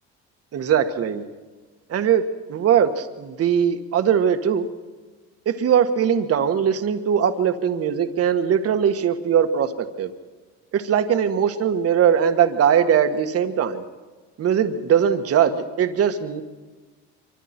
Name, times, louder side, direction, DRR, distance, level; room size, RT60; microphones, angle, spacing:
voice 1, 0.5-1.2 1.9-4.7 5.5-10.1 10.7-13.8 14.4-16.4, right 8 dB, 50° right, 8 dB, 1.7 m, -20 dB
25.5 x 24.5 x 4.5 m, 1.4 s
supercardioid pair, 85°, 31 cm